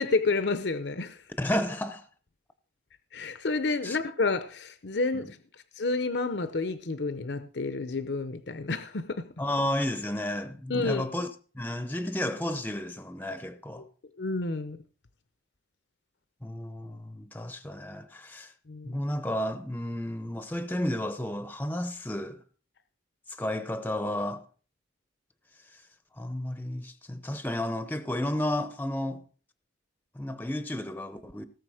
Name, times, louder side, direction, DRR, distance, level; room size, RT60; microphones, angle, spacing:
voice 1, 0.0-1.2 3.1-5.4 5.7-9.3 10.7-11.0 13.8-13.9 14.2-14.8 18.7-19.0, left 3 dB, 70° left, 0.8 m, -30 dB
voice 2, 1.4-2.1 3.8-4.0 5.1-5.2 9.4-11.3 11.5-13.8 16.4-18.5 18.8-22.4 23.3-24.4 25.7-25.8 26.2-29.2 30.1-31.4, left 1 dB, 10° left, 0.7 m, -32 dB
18.0 x 6.7 x 4.9 m
head